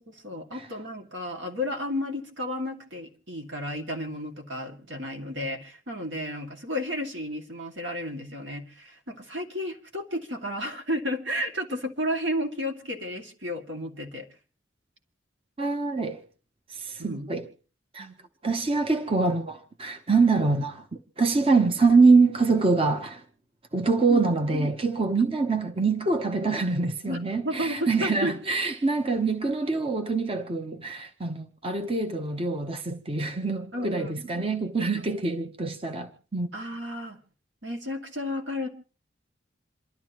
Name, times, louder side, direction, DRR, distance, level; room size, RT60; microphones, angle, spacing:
voice 1, 0.2-14.3 17.0-17.3 18.0-18.1 24.1-24.2 27.0-27.2 27.4-28.3 33.7-34.5 34.9-35.1 36.5-37.2 37.6-38.7, left 1 dB, 75° right, 2.2 m, -32 dB
voice 2, 15.6-16.2 16.7-17.5 17.9-18.1 18.4-20.9 21.2-23.2 23.7-36.5, right 4 dB, 30° right, 0.8 m, -24 dB
27.5 x 12.5 x 3.0 m
head